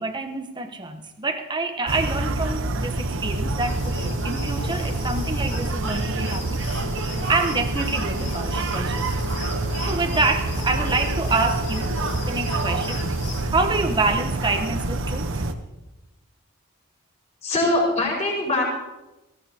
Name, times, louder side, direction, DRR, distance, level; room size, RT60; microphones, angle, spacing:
voice 1, 0.0-6.6 7.3-9.2 9.9-12.0 12.2-13.0 13.5-15.5, right 3 dB, 20° right, 6 dB, 0.9 m, -27 dB
sound 1, 1.9-15.5, right 2 dB, 60° right, 0.9 m, -27 dB
sound 2, 3.5-13.5, left 3 dB, 50° left, 1.7 m, -37 dB
voice 2, 17.4-18.6, left 2 dB, 30° left, -4 dB, 5.0 m, -22 dB
18.5 x 16.5 x 2.8 m, 1.0 s
head